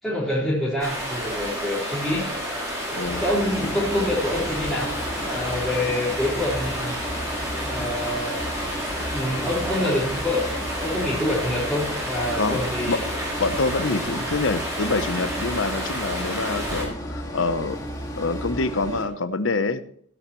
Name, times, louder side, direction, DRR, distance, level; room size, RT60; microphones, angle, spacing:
voice 1, 0.0-2.3 3.2-7.0 7.6-8.4 9.1-10.5 10.8-13.0 13.9-14.3, left 1 dB, ahead, -11 dB, 4.5 m, -26 dB
Stream, 0.8-16.8, equal, 15° right, 5.3 m, -30 dB
voice 2, 2.9-3.2 12.3-12.6 12.9-13.0 13.4-17.8 18.2-19.8, left 3 dB, 85° left, 12 dB, 0.9 m, -26 dB
sound 1, 3.1-19.1, equal, 15° left, 2.2 m, -34 dB
16.0 x 11.5 x 3.1 m, 0.62 s
head